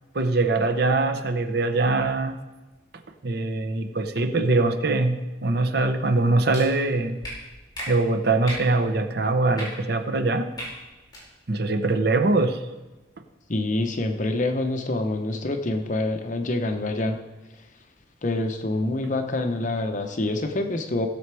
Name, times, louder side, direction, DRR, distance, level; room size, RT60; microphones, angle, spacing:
voice 1, 0.1-2.4 3.2-7.2 7.9-10.5 11.5-12.6, right 3 dB, 55° right, 8 dB, 0.8 m, -23 dB
sound 1, 6.5-6.6 7.2-7.3 7.7-7.9 8.4-8.6 9.5-9.7 10.5-10.7 11.1-11.2, equal, 20° left, 4.3 m, -34 dB
voice 2, 13.5-17.2 18.2-21.1, left 2 dB, 40° left, 5 dB, 0.8 m, -26 dB
15.5 x 6.8 x 4.8 m, 1.1 s
head